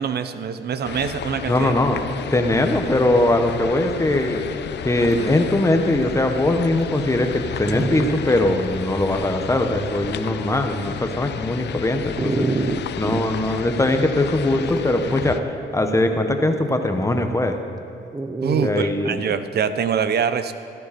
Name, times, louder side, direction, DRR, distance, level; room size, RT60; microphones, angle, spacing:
voice 1, 0.0-1.7 18.4-20.5, right 7 dB, 55° right, 11 dB, 0.8 m, -24 dB
sound 1, 0.8-15.4, left 8 dB, 60° left, 0.6 m, -32 dB
voice 2, 1.5-2.0 2.3-4.4 4.8-12.5 13.0-17.6 18.6-19.1, left 1 dB, 15° left, 5 dB, 1.2 m, -21 dB
Dog, 4.7-4.8 5.1-5.3 6.0-6.1 6.8-6.9 7.6-8.2 8.7-8.8 12.2-13.2 14.7-15.2 18.1-18.7, right 3 dB, 20° right, 0.7 m, -26 dB
13.5 x 13.0 x 4.3 m, 2.6 s
cardioid pair, 90°, 20 cm